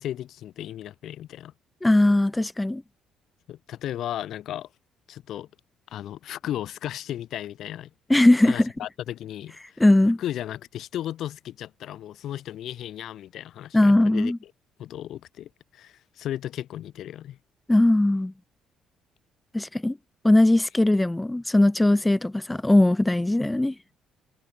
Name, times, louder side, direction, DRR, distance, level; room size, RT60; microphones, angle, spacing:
voice 1, 0.0-1.5 3.5-4.7 5.1-5.5 5.9-7.9 8.4-9.8 10.2-14.5 14.8-17.4, left 12 dB, 55° left, 4.6 m, -35 dB
voice 2, 1.8-2.8 8.1-8.7 9.8-10.2 13.7-14.4 17.7-18.3 19.5-20.0 20.2-23.7, left 1 dB, 5° left, 0.7 m, -19 dB
cardioid pair, 160°, 0 cm